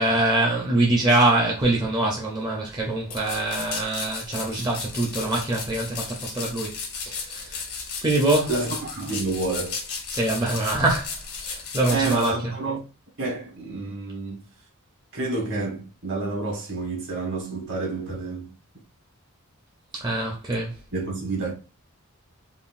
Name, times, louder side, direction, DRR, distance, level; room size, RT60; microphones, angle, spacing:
voice 1, 0.0-6.8 7.0-7.7 8.0-8.5 10.1-11.2 11.5-12.5 20.0-20.8, right 2 dB, 20° right, 0.5 m, -24 dB
sound 1, 3.1-12.3, left 5 dB, 70° left, 0.9 m, -35 dB
voice 2, 8.5-9.8 11.9-12.8 13.2-14.5 15.1-18.5 20.9-21.5, right 3 dB, 55° right, 1.1 m, -29 dB
3.7 x 2.1 x 2.4 m
head